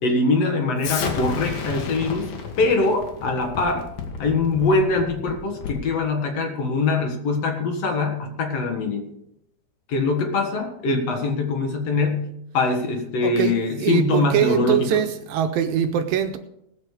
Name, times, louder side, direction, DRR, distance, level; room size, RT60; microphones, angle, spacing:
voice 1, 0.0-2.3 2.6-3.9 4.2-9.1 9.9-15.0, left 3 dB, 50° left, 3 dB, 2.2 m, -23 dB
Explosion, 0.8-5.9, left 6 dB, 70° left, 3.2 m, -32 dB
voice 2, 13.2-13.5 13.8-16.4, right 10 dB, 80° right, 7 dB, 2.3 m, -22 dB
19.5 x 6.6 x 5.0 m, 0.80 s
omnidirectional pair, 4.4 m